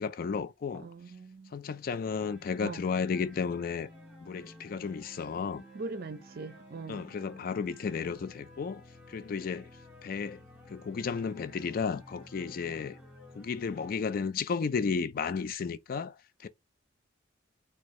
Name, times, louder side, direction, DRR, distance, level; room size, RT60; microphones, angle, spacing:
voice 1, 0.0-0.9 1.5-3.9 4.2-5.6 6.9-8.8 9.1-9.7 10.0-10.4 10.7-13.0 13.3-16.5, left 5 dB, 50° left, 0.3 m, -33 dB
voice 2, 0.7-1.6 2.6-2.8 5.7-7.1, right 3 dB, 50° right, 0.5 m, -41 dB
sound 1, 2.0-13.9, equal, 5° right, 1.5 m, -53 dB
4.4 x 2.3 x 3.1 m
head